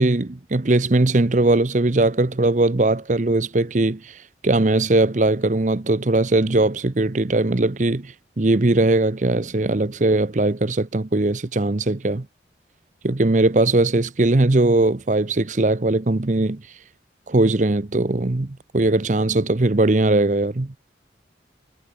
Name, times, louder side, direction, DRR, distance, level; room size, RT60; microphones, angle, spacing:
voice 1, 0.0-12.3 13.0-16.6 17.3-20.7, right 2 dB, 40° right, 0.8 m, -20 dB
head